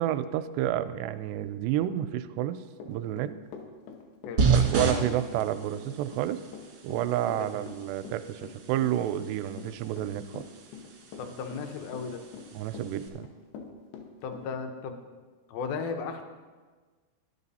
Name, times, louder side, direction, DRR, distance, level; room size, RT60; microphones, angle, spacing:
voice 1, 0.0-3.3 4.5-6.4 6.8-10.4 12.5-13.3, right 12 dB, 85° right, 11 dB, 2.6 m, -30 dB
Run / Walk footsteps, 2.8-14.5, left 5 dB, 90° left, 3.2 m, -45 dB
sound 1, 4.4-13.1, right 4 dB, 70° right, 1.1 m, -33 dB
voice 2, 11.2-12.2 14.2-15.0 15.5-16.2, left 5 dB, 75° left, 6 dB, 2.5 m, -35 dB
13.0 x 11.0 x 4.1 m, 1.4 s
omnidirectional pair, 4.8 m